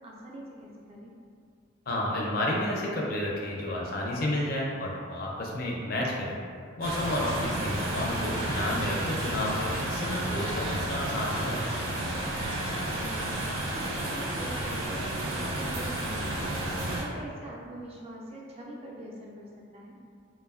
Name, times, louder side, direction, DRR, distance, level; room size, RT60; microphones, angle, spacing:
voice 1, 0.0-1.1 7.7-7.8 12.8-16.6 17.0-20.0, right 1 dB, 30° right, -3 dB, 0.3 m, -43 dB
voice 2, 1.9-6.4 6.8-11.6, left 1 dB, 50° left, -3 dB, 0.4 m, -31 dB
sound 1, 6.8-17.0, right 1 dB, 90° right, 0.5 m, -32 dB
Church bell, 8.3-14.8, left 1 dB, 85° left, 0.7 m, -45 dB
3.0 x 2.1 x 2.3 m, 2.2 s
head